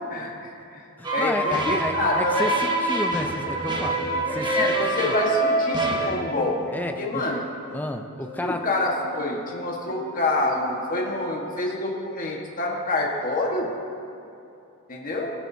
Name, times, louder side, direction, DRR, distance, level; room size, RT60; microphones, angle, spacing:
voice 1, 0.1-0.9 1.1-2.5 3.7-3.9 4.3-6.6 7.0-7.4 8.4-13.7 14.9-15.3, left 2 dB, 40° left, -1 dB, 1.5 m, -27 dB
voice 2, 1.0-4.0 4.3-5.2 6.7-7.2 7.7-8.7, left 1 dB, 10° left, 5 dB, 0.5 m, -31 dB
sound 1, 1.0-6.2, right 2 dB, 20° right, 1.0 m, -25 dB
sound 2, 2.5-11.2, left 3 dB, 80° right, 2.8 m, -42 dB
21.5 x 9.1 x 2.8 m, 2.7 s
head